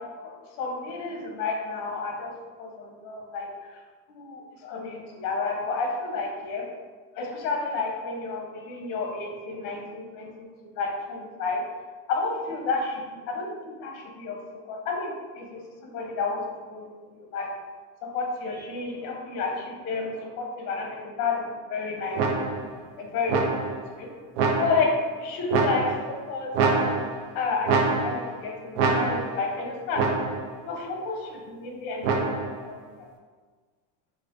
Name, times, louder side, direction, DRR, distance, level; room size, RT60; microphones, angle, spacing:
voice 1, 0.0-2.3 2.6-3.5 4.1-6.6 7.2-11.6 12.1-14.4 14.7-16.4 16.7-17.5 18.0-22.2 23.0-24.1 24.6-26.9 27.3-30.1 30.6-32.3 32.7-33.1, left 4 dB, 90° left, 0 dB, 0.9 m, -31 dB
sound 1, 22.2-22.8 23.3-23.9 24.4-25.0 25.5-26.2 26.5-27.3 27.7-28.4 28.8-29.5 30.0-30.6 32.0-32.6, right 4 dB, 55° right, 0.5 m, -25 dB
4.9 x 2.1 x 2.5 m, 1.4 s
cardioid pair, 180°, 43 cm